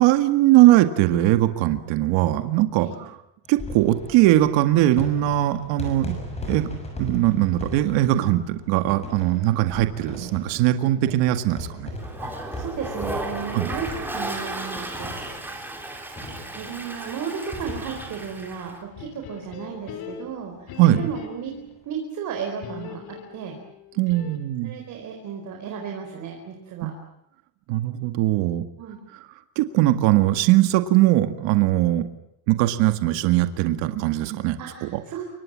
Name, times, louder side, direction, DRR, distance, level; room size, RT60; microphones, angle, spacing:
voice 1, 0.0-2.9 3.5-6.2 6.5-6.7 7.0-11.9 13.5-13.7 20.8-21.0 24.0-24.7 26.8-26.9 27.7-28.6 29.6-32.1 32.5-34.9, right 15 dB, 60° right, 8 dB, 2.0 m, -20 dB
sound 1, 3.4-19.5 19.8-19.9 20.1-20.2 21.5-21.7, left 1 dB, 10° left, 6.9 m, -38 dB
Toilet flush, 12.0-18.8, right 2 dB, 5° right, 3.6 m, -35 dB
voice 2, 12.2-15.1 16.5-21.5 21.8-23.6 24.6-26.9 28.8-29.0 34.6-35.2, right 6 dB, 35° right, 2 dB, 4.5 m, -34 dB
sound 2, 19.0-21.7 22.6-24.6, left 7 dB, 45° left, 3.9 m, -41 dB
28.5 x 24.5 x 7.6 m, 0.82 s
cardioid pair, 180°, 50 cm